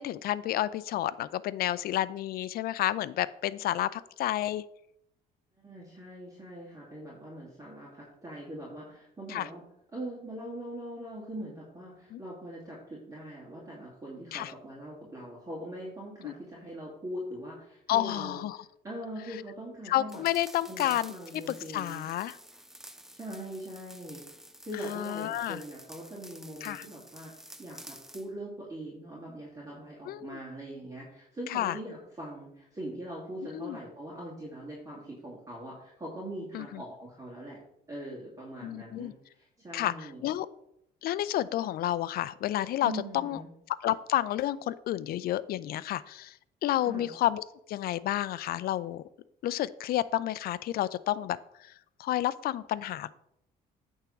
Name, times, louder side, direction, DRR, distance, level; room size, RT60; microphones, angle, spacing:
voice 1, 0.0-4.6 9.3-9.5 12.1-12.2 14.3-14.5 16.2-16.3 17.9-18.6 19.9-22.4 24.9-25.6 26.6-26.9 30.1-30.4 31.5-31.8 33.5-33.8 36.5-36.8 38.6-39.1 39.7-40.5 41.0-43.4 43.7-49.0 49.4-51.7 52.0-53.1, left 13 dB, 65° left, 16 dB, 0.5 m, -30 dB
voice 2, 5.6-9.6 9.9-18.4 18.8-20.2 20.7-22.1 23.1-24.2 24.6-27.3 27.6-37.6 37.9-40.2 42.8-43.5 46.8-47.1, right 1 dB, 20° right, -5 dB, 2.5 m, -42 dB
sound 1, 20.1-28.3, equal, ahead, 0.6 m, -50 dB
8.9 x 3.7 x 7.0 m, 0.78 s
cardioid pair, 110°, 17 cm